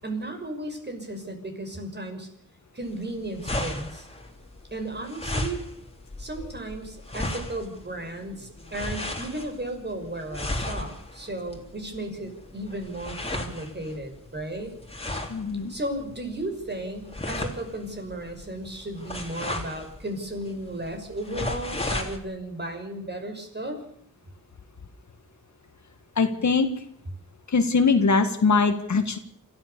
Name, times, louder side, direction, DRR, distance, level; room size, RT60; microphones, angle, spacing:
voice 1, 0.0-2.3 2.7-4.1 4.7-5.6 6.2-14.7 15.7-23.8, right 1 dB, 30° right, 5 dB, 5.9 m, -34 dB
sound 1, 2.8-22.2, left 1 dB, 20° left, 3.7 m, -35 dB
voice 2, 15.3-15.7 26.2-26.7 27.5-29.2, left 4 dB, 60° left, 7 dB, 1.9 m, -22 dB
28.0 x 14.0 x 7.0 m, 0.65 s
wide cardioid pair, 80°, 32 cm